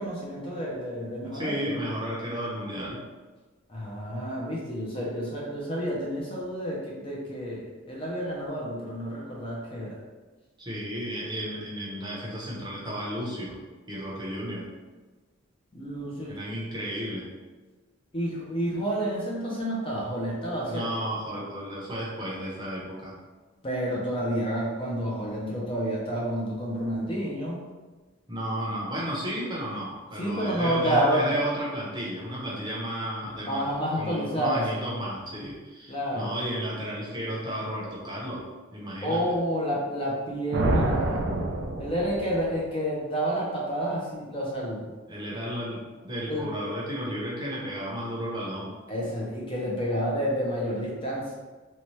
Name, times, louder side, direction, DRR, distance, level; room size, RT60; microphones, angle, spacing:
voice 1, 0.0-1.8 3.7-10.0 15.7-16.4 18.1-20.9 23.6-27.6 30.2-31.3 33.4-34.9 35.9-36.3 39.0-41.3 41.8-44.9 46.3-46.5 48.9-51.4, equal, 25° left, -4 dB, 0.5 m, -29 dB
voice 2, 1.2-3.0 10.6-13.5 13.9-14.7 16.3-17.3 20.6-23.2 28.3-38.4 38.7-39.2 45.1-48.8, equal, 20° right, -5 dB, 0.7 m, -33 dB
sound 1, 40.5-42.5, right 1 dB, 60° right, 0.4 m, -27 dB
2.7 x 2.1 x 3.0 m, 1.3 s
head